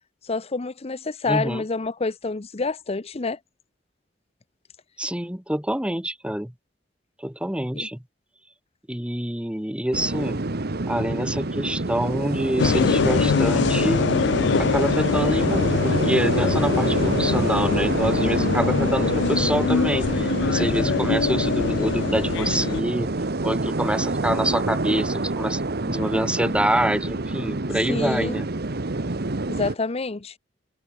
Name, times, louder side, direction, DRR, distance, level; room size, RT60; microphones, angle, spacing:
voice 1, 0.2-3.4 7.7-7.9 27.9-28.4 29.5-30.3, left 3 dB, 35° left, 0.7 m, -28 dB
voice 2, 1.3-1.6 5.0-6.5 7.2-8.0 8.9-10.4 10.9-14.1 14.6-23.1 23.4-28.5, right 1 dB, 5° right, 1.1 m, -26 dB
sound 1, 9.9-29.7, right 2 dB, 55° right, 1.2 m, -27 dB
sound 2, 12.6-22.8, left 5 dB, 65° left, 0.4 m, -23 dB
head